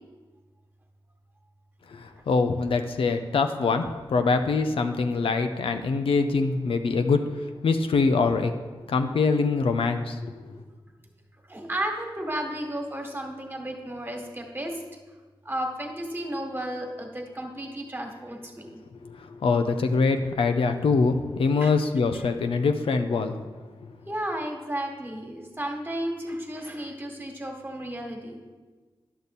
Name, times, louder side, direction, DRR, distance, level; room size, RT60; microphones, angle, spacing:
voice 1, 1.9-7.2 7.6-8.5 8.9-10.3 19.0-23.3, left 4 dB, 85° left, 7 dB, 0.6 m, -24 dB
voice 2, 11.5-14.8 15.4-18.8 21.6-21.7 24.0-28.4, right 1 dB, 25° right, 2 dB, 1.6 m, -33 dB
10.5 x 6.7 x 4.2 m, 1.3 s
cardioid pair, 65°, 9 cm